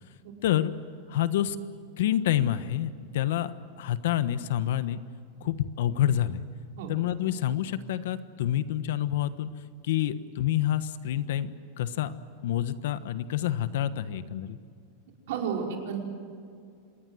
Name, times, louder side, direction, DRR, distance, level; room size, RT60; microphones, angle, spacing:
voice 1, 0.4-0.7 1.1-1.6 2.0-5.0 5.4-6.4 6.9-9.5 9.9-11.5 11.8-12.1 12.4-14.6, left 11 dB, 70° left, 12 dB, 1.3 m, -28 dB
voice 2, 15.3-16.0, right 7 dB, 65° right, 1 dB, 5.3 m, -32 dB
26.5 x 21.0 x 7.9 m, 2.4 s
supercardioid pair, 165°, 0 cm